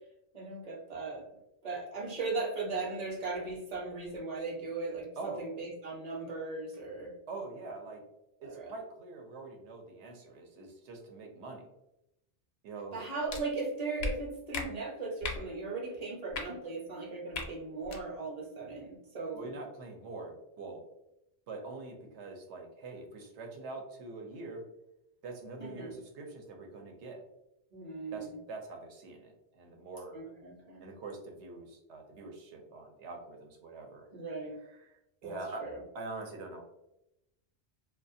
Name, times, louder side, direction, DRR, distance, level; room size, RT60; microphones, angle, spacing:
voice 1, 0.3-1.2 1.6-7.1 8.4-8.7 12.9-19.5 25.6-26.0 27.7-28.3 30.1-30.9 34.1-34.5 35.2-35.3 35.6-35.8, right 3 dB, 40° right, -2 dB, 0.7 m, -38 dB
voice 2, 5.2-5.5 7.3-8.0 8.5-11.6 12.6-13.0 19.3-20.8 21.5-24.6 25.2-27.2 28.1-30.2 30.8-34.1 34.7-35.7 35.9-36.6, right 3 dB, 80° right, 2 dB, 0.9 m, -44 dB
sound 1, 13.3-13.4 14.0-14.1 14.5-14.7 15.2-15.4 16.3-16.4 17.3-17.5 17.8-18.0, left 3 dB, 70° left, 0.8 m, -35 dB
2.4 x 2.4 x 2.6 m, 0.86 s
omnidirectional pair, 1.2 m